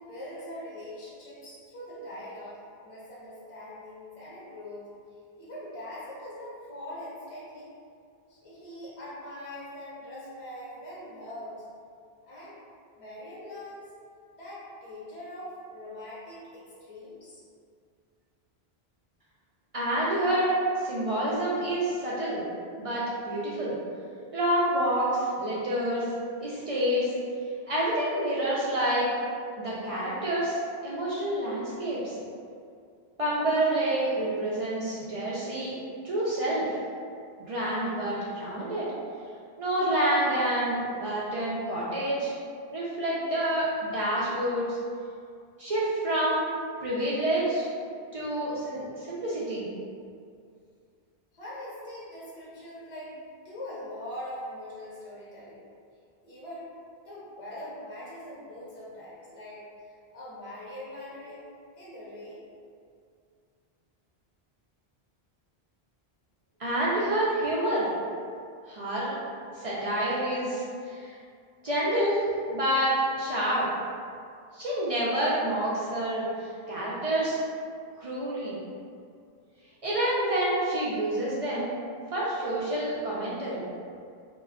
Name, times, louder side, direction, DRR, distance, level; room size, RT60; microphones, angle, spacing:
voice 1, 0.0-4.9 5.4-7.7 8.3-11.7 12.2-12.6 12.9-13.9 14.3-17.4 51.3-53.2 53.4-55.6 56.2-56.7 57.0-61.5 61.8-62.4, left 1 dB, 35° left, -8 dB, 0.8 m, -42 dB
voice 2, 19.7-22.4 22.8-23.8 24.3-26.1 26.4-27.1 27.7-29.1 29.6-32.2 33.2-35.7 36.0-36.8 37.5-38.9 39.6-42.3 42.7-44.8 45.6-46.4 46.8-47.7 48.1-49.7 66.6-67.9 68.7-69.2 69.5-71.1 71.6-72.2 72.5-73.7 74.5-77.4 78.0-78.6 79.8-81.7 82.1-83.7, right 1 dB, 55° right, -8 dB, 0.4 m, -28 dB
2.2 x 2.2 x 3.4 m, 2.3 s
omnidirectional pair, 1.1 m